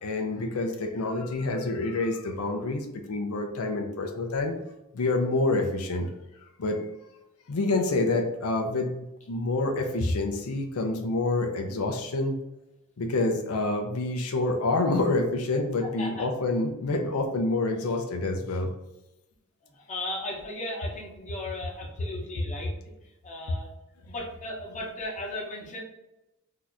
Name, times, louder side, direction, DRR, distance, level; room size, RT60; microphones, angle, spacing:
voice 1, 0.0-4.5 4.9-6.1 6.6-6.8 7.5-12.4 13.0-18.7, left 2 dB, 85° left, 4 dB, 0.5 m, -27 dB
voice 2, 15.8-16.3 19.9-22.7 23.2-23.7 24.0-25.8, left 1 dB, 35° left, -3 dB, 1.0 m, -36 dB
2.8 x 2.4 x 4.0 m, 0.93 s
head